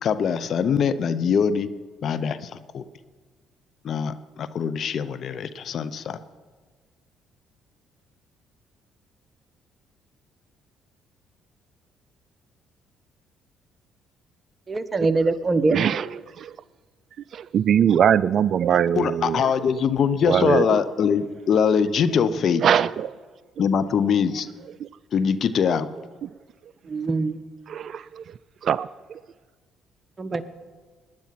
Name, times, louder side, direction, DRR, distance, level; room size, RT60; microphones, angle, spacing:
voice 1, 0.0-1.7 2.0-2.8 3.8-6.2 18.9-22.6 23.6-24.5 25.1-25.9, left 7 dB, 60° left, 0.7 m, -23 dB
voice 2, 14.7-15.8 26.9-27.4 30.2-30.4, right 3 dB, 35° right, 1.1 m, -23 dB
voice 3, 15.7-16.1 16.4-16.5 17.3-19.5 20.2-20.8 22.6-23.1 24.8-24.9 26.2-26.3 27.7-28.2 28.6-29.2, right 8 dB, 60° right, 0.3 m, -22 dB
18.5 x 10.5 x 5.9 m
supercardioid pair, 60°, 0 cm